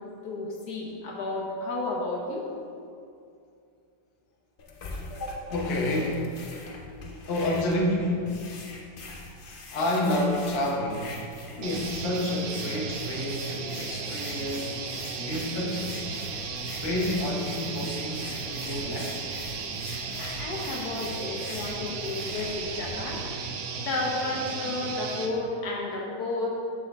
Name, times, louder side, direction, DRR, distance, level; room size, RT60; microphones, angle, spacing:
voice 1, 0.2-2.4 5.1-5.5 20.2-23.2 23.7-26.5, left 2 dB, 65° left, -2 dB, 1.3 m, -32 dB
sound 1, 4.6-23.2, left 3 dB, 85° left, 0.4 m, -43 dB
voice 2, 5.5-6.5 7.2-8.4 9.7-11.2 11.6-14.8 15.2-16.1 16.8-19.2, left 1 dB, 45° left, -2 dB, 0.9 m, -29 dB
sound 2, 11.6-25.3, right 5 dB, 70° right, 0.9 m, -35 dB
6.1 x 6.1 x 3.5 m, 2.5 s
omnidirectional pair, 1.9 m